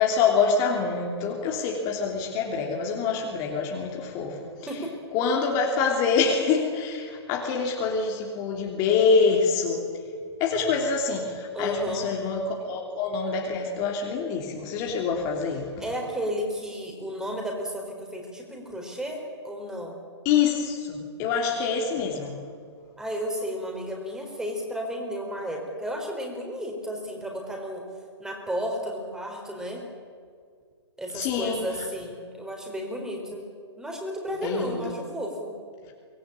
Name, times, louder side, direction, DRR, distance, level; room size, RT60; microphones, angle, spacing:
voice 1, 0.0-4.4 5.1-9.8 10.4-15.7 20.2-22.4 31.1-31.6 34.4-35.0, left 5 dB, 25° left, 0 dB, 3.1 m, -25 dB
voice 2, 11.5-12.1 15.8-20.0 23.0-27.8 28.2-29.8 31.0-33.4 33.8-35.5, equal, 5° right, 1 dB, 4.4 m, -33 dB
24.5 x 20.0 x 8.8 m, 2.1 s
figure-of-eight pair, 120°, 15 cm